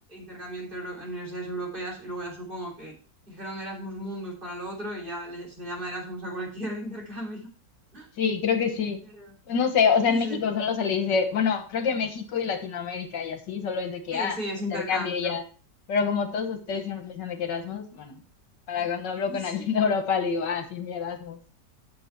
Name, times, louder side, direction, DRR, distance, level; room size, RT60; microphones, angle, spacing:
voice 1, 0.1-2.9 3.3-7.4 7.9-8.1 9.2-9.3 10.0-10.4 14.1-15.4 16.7-16.8 18.8-18.9 19.3-19.5, right 1 dB, 30° right, -2 dB, 3.5 m, -35 dB
voice 2, 8.2-9.0 9.5-14.4 14.7-15.4 15.9-18.1 18.7-21.4, left 6 dB, 75° left, 7 dB, 1.9 m, -27 dB
8.7 x 7.0 x 4.5 m, 0.39 s
omnidirectional pair, 1.9 m